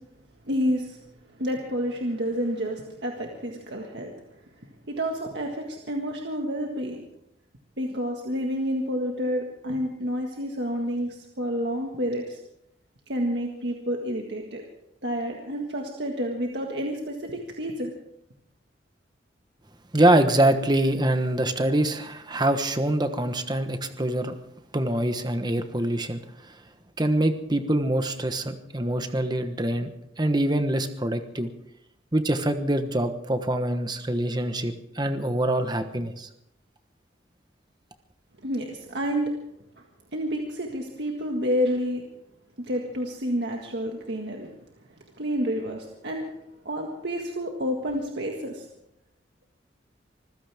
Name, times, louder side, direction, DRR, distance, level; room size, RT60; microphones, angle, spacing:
voice 1, 0.5-1.0 1.4-4.1 4.9-7.0 7.8-12.4 13.1-14.6 15.0-17.9 38.4-39.3 40.1-42.0 42.6-44.5 45.2-46.2 46.6-48.7, equal, 65° right, 1 dB, 1.8 m, -29 dB
voice 2, 19.9-24.3 24.7-26.6 27.0-29.9 30.2-31.5 32.1-36.3, right 1 dB, 25° right, 8 dB, 1.1 m, -24 dB
25.5 x 15.5 x 3.6 m, 0.80 s
head